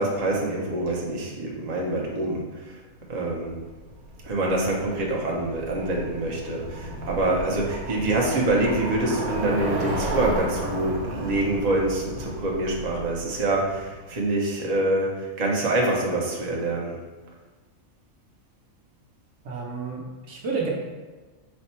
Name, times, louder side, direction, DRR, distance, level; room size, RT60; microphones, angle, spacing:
voice 1, 0.0-2.8 3.1-3.6 4.2-17.0, right 2 dB, 45° right, -2 dB, 0.5 m, -26 dB
Bicycle, 3.3-14.2, right 1 dB, 80° right, 1.3 m, -33 dB
voice 2, 19.4-20.7, right 4 dB, 65° right, -1 dB, 1.0 m, -30 dB
4.2 x 2.1 x 4.2 m, 1.2 s
omnidirectional pair, 1.5 m